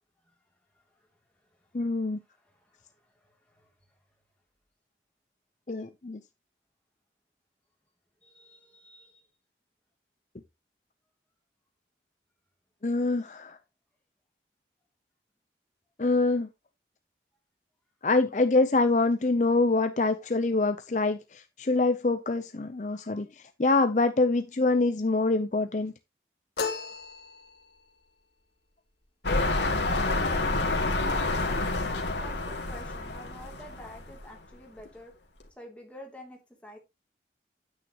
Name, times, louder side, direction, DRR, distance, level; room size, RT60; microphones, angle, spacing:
voice 1, 1.7-2.2 5.7-6.2 12.8-13.6 16.0-16.5 18.0-23.3 23.6-25.9, left 3 dB, 45° left, 0.6 m, -25 dB
voice 2, 8.2-9.2 32.1-35.1 35.6-36.8, left 1 dB, 5° left, 2.7 m, -48 dB
sound 1, 26.6-27.8, left 4 dB, 70° left, 1.7 m, -35 dB
sound 2, 29.2-34.2 34.9-35.0, left 2 dB, 90° left, 2.4 m, -28 dB
9.4 x 8.9 x 2.9 m
head